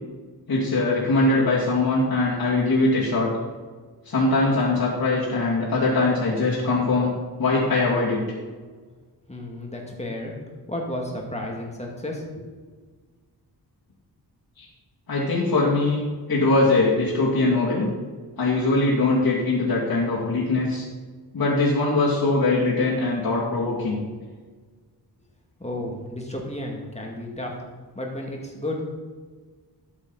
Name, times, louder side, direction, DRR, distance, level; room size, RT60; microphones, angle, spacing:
voice 1, 0.5-3.3 4.0-7.1 7.4-8.2 14.6-14.7 15.1-16.0 16.3-17.9 18.4-20.8 21.3-24.0, left 2 dB, 55° left, -7 dB, 2.6 m, -21 dB
voice 2, 9.3-10.3 10.7-12.5 25.6-27.5 27.9-29.0, left 1 dB, 15° left, -1 dB, 2.2 m, -32 dB
12.0 x 7.3 x 4.1 m, 1.4 s
wide cardioid pair, 105°, 41 cm